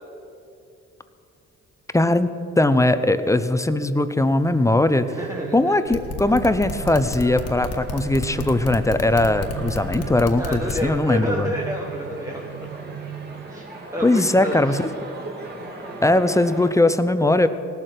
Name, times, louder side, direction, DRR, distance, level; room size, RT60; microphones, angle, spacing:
voice 1, 1.9-5.1 5.5-11.5 14.0-14.9 16.0-17.5, left 2 dB, 10° left, 11 dB, 0.6 m, -20 dB
sound 1, 4.2-13.5, right 10 dB, 85° right, 0.7 m, -38 dB
voice 2, 5.2-6.0 10.4-12.5 13.5-13.7 13.9-14.8, equal, 10° right, 0 dB, 1.2 m, -29 dB
sound 2, 5.8-10.8, left 5 dB, 55° left, 1.4 m, -31 dB
sound 3, 6.2-16.7, right 2 dB, 35° right, 2.6 m, -39 dB
17.5 x 7.6 x 6.7 m, 2.7 s
cardioid pair, 90°, 30 cm